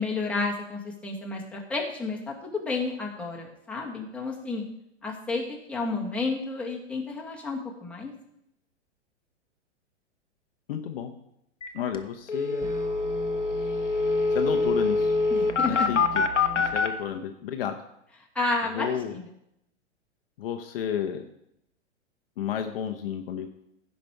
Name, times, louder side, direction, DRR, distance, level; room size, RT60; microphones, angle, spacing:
voice 1, 0.0-4.6 5.0-8.1 15.3-15.9 18.4-19.2, left 3 dB, 5° left, -2 dB, 1.7 m, -31 dB
voice 2, 10.7-11.1 11.7-12.7 14.3-15.1 15.7-16.2 16.5-17.8 18.7-19.2 20.4-21.2 22.4-23.5, left 8 dB, 50° left, 5 dB, 1.0 m, -31 dB
sound 1, 11.6-11.7 11.9-12.0 12.3-16.9, left 4 dB, 85° left, 1.0 m, -25 dB
sound 2, 12.6-16.7, right 4 dB, 15° right, 0.8 m, -39 dB
15.5 x 5.3 x 4.5 m, 0.78 s
figure-of-eight pair, 105°, 35 cm